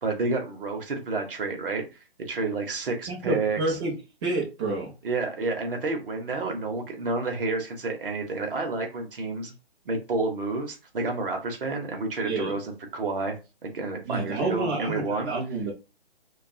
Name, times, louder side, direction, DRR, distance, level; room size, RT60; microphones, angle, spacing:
voice 1, 0.0-3.8 5.0-9.5 9.8-13.3 13.6-15.3, right 3 dB, 55° right, 3 dB, 0.8 m, -30 dB
voice 2, 3.1-3.9 4.2-4.9 12.2-12.5 14.0-15.7, right 3 dB, 25° right, -2 dB, 0.7 m, -28 dB
2.5 x 2.3 x 2.6 m, 0.29 s
figure-of-eight pair, 140°, 33 cm